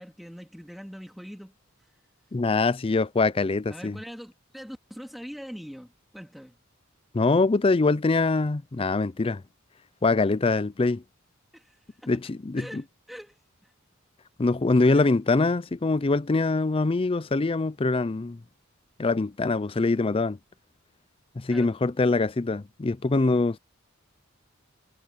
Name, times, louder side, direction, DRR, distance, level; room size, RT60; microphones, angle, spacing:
voice 1, 0.0-1.5 3.7-6.6 11.5-12.1 12.6-13.7 14.9-15.1 21.5-21.7, equal, ahead, 3.5 m, -43 dB
voice 2, 2.3-4.0 7.1-9.4 10.0-11.0 12.1-12.8 14.4-18.4 19.0-20.4 21.4-23.6, left 3 dB, 25° left, 0.4 m, -24 dB
head